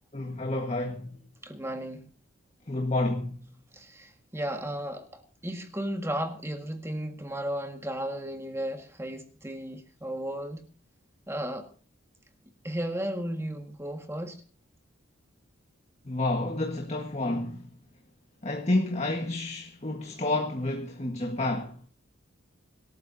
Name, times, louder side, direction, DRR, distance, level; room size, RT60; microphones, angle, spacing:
voice 1, 0.1-1.2 2.7-3.4 16.0-17.7 18.4-21.8, left 2 dB, 30° left, 1.6 m, -29 dB
voice 2, 1.4-2.0 3.7-10.7 11.3-11.7 12.6-14.4, right 1 dB, 10° right, 1.7 m, -34 dB
26.0 x 13.5 x 2.8 m
head